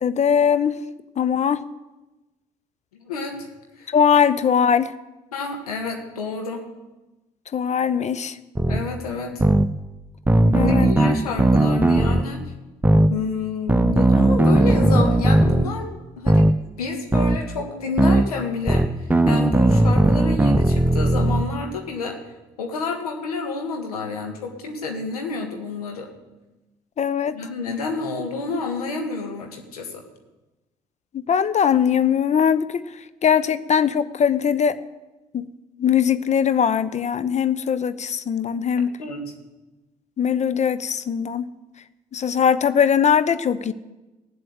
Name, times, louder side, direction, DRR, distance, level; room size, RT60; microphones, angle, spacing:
voice 1, 0.0-0.7 1.2-1.6 3.9-4.9 7.5-8.4 10.5-11.1 27.0-27.4 31.1-34.8 35.3-35.5 35.8-38.9 40.2-41.4 42.1-43.7, left 7 dB, 35° left, 15 dB, 0.8 m, -20 dB
voice 2, 2.9-3.5 3.8-3.9 5.3-6.7 8.7-9.4 10.5-12.4 13.1-16.5 16.8-22.2 22.6-26.1 27.3-30.0 39.0-39.3, left 4 dB, 80° left, 3 dB, 1.6 m, -29 dB
sound 1, 8.6-8.8 9.4-9.7 10.3-12.2 12.8-13.1 13.7-15.7 16.3-16.5 17.1-17.4 18.0-18.2 18.7-21.5, right 1 dB, 10° right, 0.8 m, -17 dB
16.5 x 7.8 x 7.9 m, 1.1 s
figure-of-eight pair, 45°, 19 cm